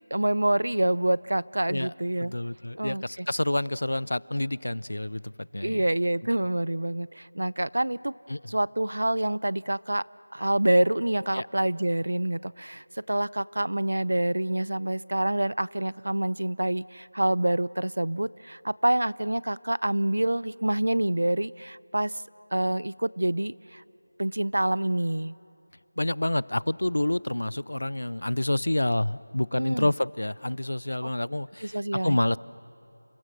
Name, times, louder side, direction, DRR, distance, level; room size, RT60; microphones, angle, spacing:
voice 1, 0.1-2.3 2.8-3.3 5.6-8.1 8.5-10.0 10.3-22.1 22.5-23.8 24.2-25.4 29.5-29.9 31.0-31.1 31.6-32.2, right 1 dB, 75° right, 21 dB, 0.5 m, -27 dB
voice 2, 2.2-5.8 8.3-8.4 11.3-11.5 26.0-32.4, left 1 dB, 75° left, 21 dB, 0.5 m, -28 dB
29.0 x 27.5 x 6.3 m, 2.7 s
figure-of-eight pair, 175°, 0 cm